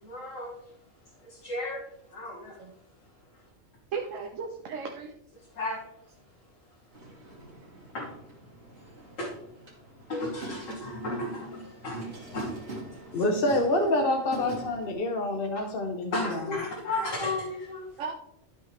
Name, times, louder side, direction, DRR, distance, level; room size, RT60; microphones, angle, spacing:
voice 1, 0.0-0.5 1.2-2.6 5.5-5.9 7.9-8.1 9.2-9.3 10.1-13.2 16.1-17.9, left 2 dB, 75° left, -5 dB, 2.1 m, -34 dB
voice 2, 3.9-5.1 18.0-18.1, right 5 dB, 70° right, 2 dB, 1.2 m, -35 dB
sound 1, 6.9-14.9, right 2 dB, 55° right, 2.4 m, -44 dB
voice 3, 13.1-16.4, left 1 dB, 50° left, 4 dB, 0.9 m, -27 dB
12.0 x 5.6 x 3.3 m, 0.75 s
omnidirectional pair, 1.4 m